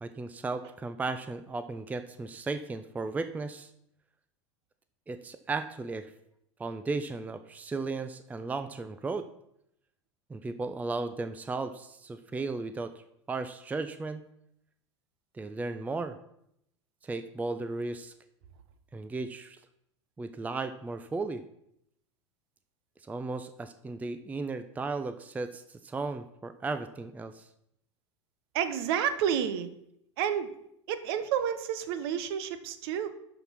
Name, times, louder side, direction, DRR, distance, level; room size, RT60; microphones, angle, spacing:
voice 1, 0.0-3.7 5.1-6.1 6.6-9.3 10.3-12.9 13.3-14.2 15.3-16.2 17.0-18.1 18.9-19.6 20.2-21.4 23.1-27.5, right 3 dB, 10° right, 10 dB, 0.5 m, -35 dB
voice 2, 28.5-29.7 30.2-30.5 30.9-33.1, right 9 dB, 55° right, 12 dB, 1.0 m, -30 dB
12.0 x 4.6 x 5.8 m, 0.76 s
figure-of-eight pair, 80°, 15 cm